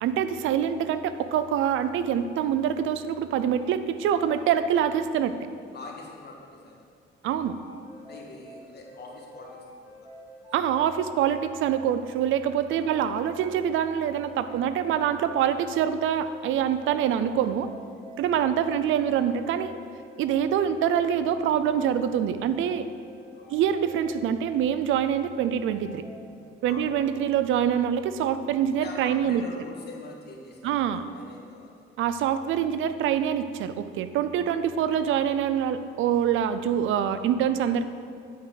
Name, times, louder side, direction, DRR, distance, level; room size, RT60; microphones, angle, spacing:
voice 1, 0.0-5.3 7.2-7.6 10.5-17.7 18.2-19.7 20.2-22.9 23.5-26.0 26.6-29.4 30.6-31.0 32.0-37.8, right 9 dB, 80° right, 12 dB, 0.5 m, -25 dB
voice 2, 5.7-6.9 7.7-10.1 10.4-10.5 12.7-12.9 23.3-23.6 26.7-26.9 28.8-31.8, left 3 dB, 55° left, -1 dB, 1.6 m, -44 dB
sound 1, 7.4-26.3, equal, 10° right, 2.1 m, -48 dB
8.6 x 4.7 x 5.7 m, 2.2 s
cardioid pair, 90°, 20 cm